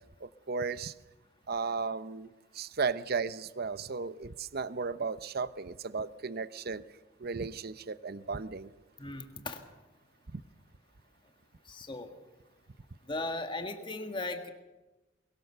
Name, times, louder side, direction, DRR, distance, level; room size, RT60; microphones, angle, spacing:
voice 1, 0.2-0.9 1.5-2.3 2.5-6.8 7.2-8.7 10.3-10.4, right 4 dB, 50° right, 15 dB, 0.7 m, -35 dB
voice 2, 9.0-9.6 11.6-12.1 13.0-14.5, left 2 dB, 25° left, 6 dB, 1.7 m, -37 dB
23.5 x 22.0 x 6.8 m, 1.1 s
head